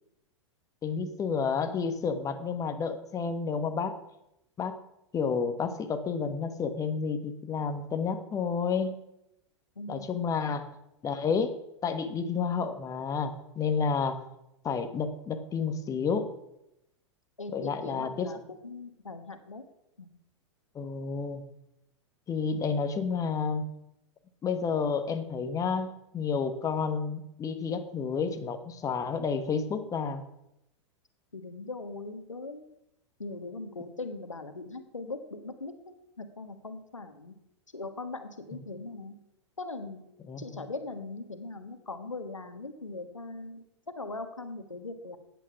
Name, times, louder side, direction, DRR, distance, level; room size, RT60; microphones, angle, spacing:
voice 1, 0.8-4.0 4.6-4.8 5.1-9.0 9.9-10.7 11.0-11.5 11.8-14.2 14.6-16.3 17.5-18.3 20.7-21.4 22.3-23.6 24.4-30.2 40.3-40.6, left 5 dB, 20° left, 8 dB, 1.3 m, -30 dB
voice 2, 9.8-10.1 17.4-19.6 20.0-20.1 31.3-32.6 33.2-37.3 37.7-39.2 39.6-40.0 40.4-43.6 44.0-45.2, left 3 dB, 85° left, 9 dB, 1.4 m, -40 dB
14.0 x 9.2 x 5.9 m, 0.84 s
figure-of-eight pair, 95°, 16 cm